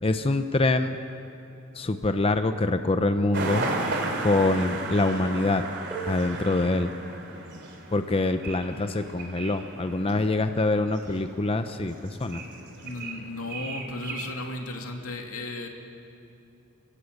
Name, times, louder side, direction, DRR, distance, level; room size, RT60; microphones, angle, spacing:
voice 1, 0.0-1.0 1.7-3.7 4.2-5.6 6.1-6.9 7.9-12.4, left 2 dB, 25° left, 8 dB, 0.7 m, -25 dB
sound 1, 3.3-14.3, right 2 dB, 55° right, 3.2 m, -35 dB
sound 2, 5.9-11.3 12.4-12.5 13.3-13.5, right 3 dB, 5° right, 2.3 m, -45 dB
voice 2, 12.8-15.7, left 2 dB, 85° left, 2 dB, 2.5 m, -35 dB
26.0 x 17.0 x 8.1 m, 2.7 s
head